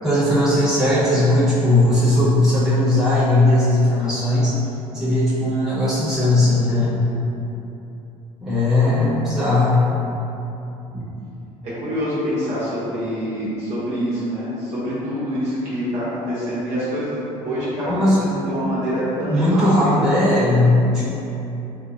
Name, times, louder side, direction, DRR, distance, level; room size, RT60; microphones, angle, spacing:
voice 1, 0.0-4.6 4.9-7.0 8.4-9.9 17.9-18.2 19.3-21.0, left 1 dB, 5° right, -12 dB, 1.4 m, -18 dB
voice 2, 11.6-17.2 17.4-20.1, equal, 40° right, -10 dB, 1.2 m, -26 dB
3.9 x 2.9 x 2.5 m, 3.0 s
figure-of-eight pair, 60°, 19 cm